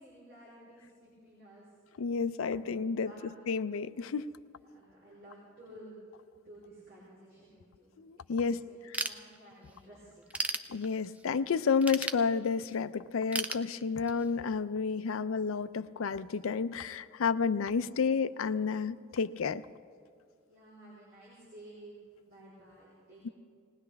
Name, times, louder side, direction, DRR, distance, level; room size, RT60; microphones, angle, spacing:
voice 1, 0.0-1.6 2.5-3.5 4.6-6.0 6.3-10.2 17.7-17.9 20.5-23.3, right 1 dB, 45° right, -7 dB, 4.0 m, -54 dB
voice 2, 2.0-4.3 8.0-9.0 10.7-19.6 23.2-23.3, left 5 dB, 85° left, 14 dB, 0.5 m, -31 dB
Ratchet pawl / Tools, 8.9-9.7 10.1-11.3 11.8-12.8 13.3-14.3, right 2 dB, 5° right, 0.3 m, -35 dB
20.0 x 18.5 x 3.4 m, 2.2 s
head